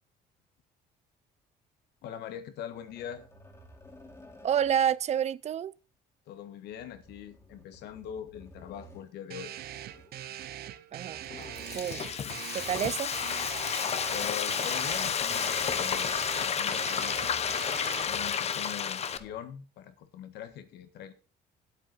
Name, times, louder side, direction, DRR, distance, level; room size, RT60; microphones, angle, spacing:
voice 1, 2.0-3.2 6.3-9.5 14.1-16.1 16.4-17.2 18.0-21.1, left 10 dB, 75° left, 1.5 m, -42 dB
sound 1, 2.7-5.0 6.7-9.1 9.6-10.3 11.0-12.1 12.5-13.8 14.4-16.4 17.0-17.7 18.1-18.6 18.9-19.5 20.5-20.6, left 1 dB, 15° left, 2.4 m, -55 dB
voice 2, 4.4-5.7 10.9-11.2 11.7-12.0 12.5-13.1, right 9 dB, 40° right, 0.4 m, -28 dB
sound 2, 9.3-18.0, right 12 dB, 65° right, 0.8 m, -42 dB
Frying (food), 11.3-19.2, left 7 dB, 40° left, 0.8 m, -31 dB
8.5 x 8.1 x 5.3 m
cardioid pair, 110°, 17 cm